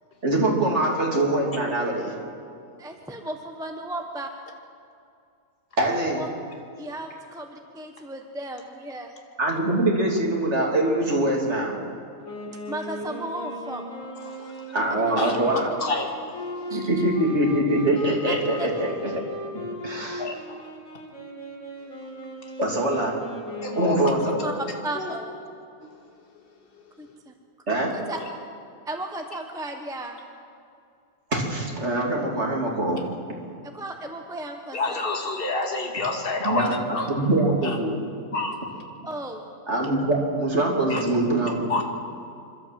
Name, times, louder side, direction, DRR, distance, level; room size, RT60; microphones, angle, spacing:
voice 1, 0.2-2.1 5.8-6.2 9.4-11.8 14.7-15.7 16.7-19.1 19.8-20.2 22.6-23.2 23.8-24.5 27.7-27.9 31.3-33.0 36.4-36.7 37.2-38.0 39.7-41.7, right 1 dB, 50° right, -1 dB, 3.4 m, -23 dB
voice 2, 2.8-4.3 6.1-6.3 6.8-9.1 12.7-13.9 15.0-15.1 16.7-16.9 18.6-18.7 24.4-24.5 24.8-25.3 27.0-27.3 27.9-28.2 28.9-30.2 33.6-35.0 39.1-39.4, right 1 dB, 5° right, 3 dB, 1.1 m, -35 dB
Wind instrument woodwind instrument, 12.2-24.7, left 1 dB, 70° left, 4.3 m, -37 dB
voice 3, 14.2-14.8 15.2-16.1 20.2-20.3 23.6-24.0 24.9-25.1 25.8-25.9 34.7-36.7 36.9-37.1 37.6-37.8 38.3-38.6 40.9-41.0 41.7-41.8, left 3 dB, 40° left, 2 dB, 2.2 m, -28 dB
27.0 x 12.5 x 7.7 m, 2.4 s
omnidirectional pair, 1.5 m